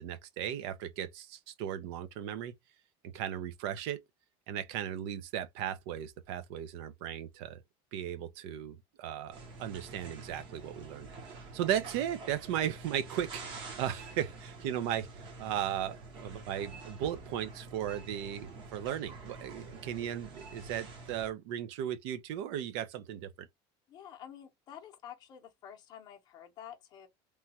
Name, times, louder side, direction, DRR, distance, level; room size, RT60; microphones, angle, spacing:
voice 1, 0.0-2.5 3.0-4.0 4.5-7.6 7.9-15.1 15.4-23.5, right 10 dB, 85° right, 0.5 m, -36 dB
sound 1, 9.3-21.3, right 3 dB, 40° right, 0.8 m, -47 dB
voice 2, 23.9-27.1, left 9 dB, 30° left, 0.7 m, -49 dB
3.0 x 2.2 x 2.8 m
cardioid pair, 180°, 13 cm